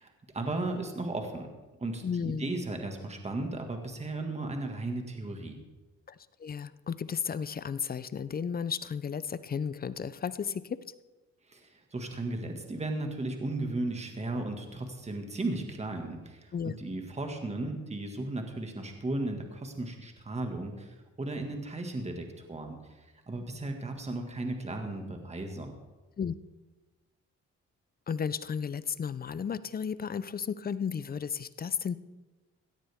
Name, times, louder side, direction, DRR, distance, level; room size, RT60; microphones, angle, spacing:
voice 1, 0.0-1.5 1.8-5.6 11.5-25.7, right 2 dB, 20° right, 4 dB, 1.9 m, -35 dB
voice 2, 2.0-2.5 6.1-10.8 16.5-16.7 26.2-26.3 28.1-32.0, left 7 dB, 30° left, 16 dB, 0.5 m, -34 dB
17.0 x 13.0 x 3.6 m, 1.2 s
cardioid pair, 90°, 30 cm